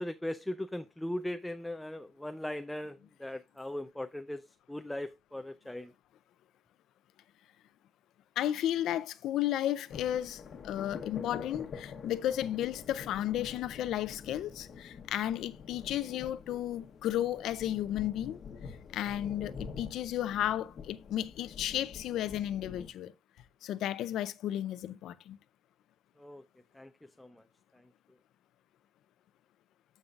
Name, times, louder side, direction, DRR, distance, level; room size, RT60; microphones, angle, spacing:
voice 1, 0.0-4.4 4.7-5.9 26.2-26.4 26.7-26.9 27.2-27.4, left 1 dB, 5° left, 0.5 m, -39 dB
voice 2, 8.4-18.4 18.9-23.1 23.6-25.4, left 12 dB, 80° left, 0.5 m, -33 dB
sound 1, 9.9-22.9, left 6 dB, 60° left, 1.1 m, -46 dB
14.5 x 5.4 x 2.4 m
cardioid pair, 90°, 0 cm